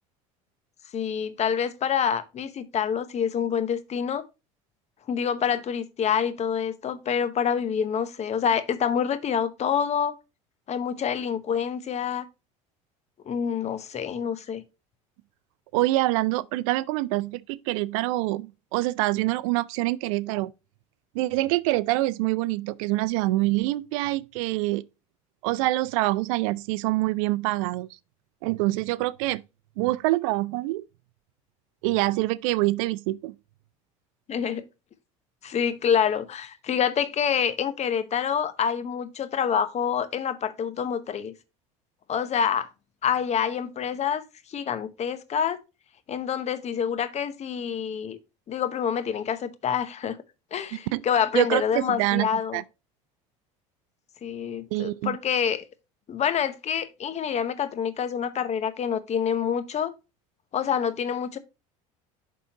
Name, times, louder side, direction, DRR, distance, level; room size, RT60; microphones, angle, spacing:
voice 1, 0.9-4.2 5.1-10.1 10.7-12.2 13.3-14.6 34.3-34.6 35.4-41.3 42.1-42.7 43.0-44.2 44.5-45.6 46.1-48.2 48.5-50.2 50.5-52.6 54.2-55.6 56.1-59.9 60.5-61.4, left 8 dB, 40° left, 0.9 m, -27 dB
voice 2, 15.7-20.5 21.1-24.8 25.4-27.9 28.4-29.4 29.8-30.8 31.8-33.4 50.9-51.0 51.3-52.6 54.7-55.2, right 18 dB, 75° right, 0.4 m, -25 dB
11.0 x 3.7 x 2.9 m
hypercardioid pair, 80°, 17 cm